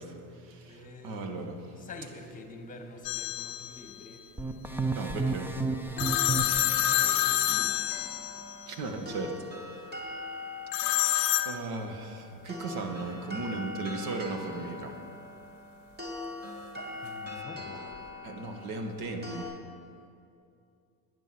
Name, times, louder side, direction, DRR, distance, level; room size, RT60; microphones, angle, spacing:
voice 1, 0.0-1.7 4.9-5.5 8.7-9.5 10.8-14.9 18.2-19.5, right 3 dB, 50° right, 5 dB, 1.7 m, -37 dB
voice 2, 0.7-1.2 1.7-4.2 6.3-7.8 8.7-8.8 9.7-9.8 16.1-16.3 16.8-18.1 18.6-18.7, left 3 dB, 20° left, 5 dB, 1.6 m, -47 dB
sound 1, 3.0-3.8 6.0-8.6 10.7-11.5, left 14 dB, 50° left, 0.9 m, -27 dB
sound 2, 4.4-7.1, right 3 dB, 5° right, 0.5 m, -32 dB
sound 3, 6.0-19.4, left 2 dB, 20° right, 2.5 m, -42 dB
11.0 x 9.9 x 6.0 m, 2.5 s
supercardioid pair, 110°, 44 cm